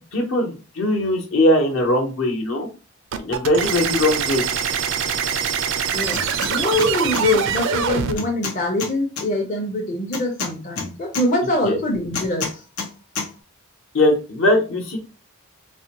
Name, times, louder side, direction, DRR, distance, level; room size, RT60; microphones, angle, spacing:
voice 1, 0.1-2.7 3.2-4.4 11.6-11.8 13.9-15.0, left 1 dB, 65° left, 1 dB, 1.0 m, -20 dB
sound 1, 3.1-8.1, right 7 dB, 60° right, 0.4 m, -24 dB
sound 2, 6.1-6.5 6.8-7.2 8.2-9.3 10.1-11.3 12.1-12.9 13.2-13.3, left 4 dB, 85° left, 0.9 m, -28 dB
voice 2, 6.5-12.5, left 1 dB, 40° left, -2 dB, 0.7 m, -23 dB
4.1 x 2.2 x 2.9 m, 0.32 s
head